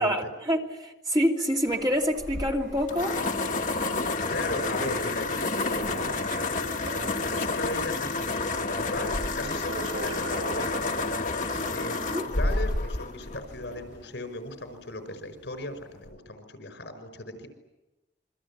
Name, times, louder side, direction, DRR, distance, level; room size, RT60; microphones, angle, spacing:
voice 1, 0.0-3.2 12.1-12.3, equal, 20° right, 2.6 m, -26 dB
sound 1, 1.7-13.3 13.9-14.0, right 2 dB, 85° right, 5.1 m, -42 dB
sound 2, 2.2-14.0, left 3 dB, 45° left, 1.3 m, -30 dB
voice 2, 4.3-11.1 11.5-17.5, left 1 dB, 80° left, 5.3 m, -37 dB
28.0 x 24.0 x 8.6 m
head